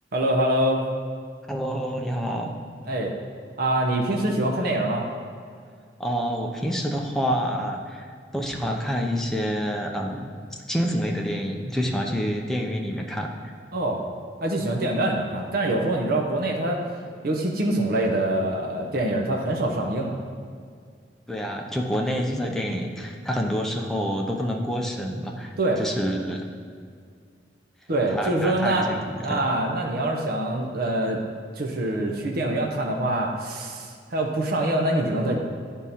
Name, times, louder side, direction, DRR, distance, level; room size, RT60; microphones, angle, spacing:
voice 1, 0.1-0.8 2.8-3.1 3.6-5.0 13.7-14.0 14.4-16.8 17.2-20.2 25.6-25.8 27.9-28.9 29.2-31.2 31.6-35.4, right 1 dB, 55° right, 1 dB, 0.7 m, -24 dB
voice 2, 1.5-2.6 6.0-8.0 8.3-10.3 10.7-13.5 21.3-26.4 28.1-29.4, equal, 5° left, 0 dB, 0.6 m, -27 dB
10.5 x 3.7 x 4.2 m, 2.1 s
head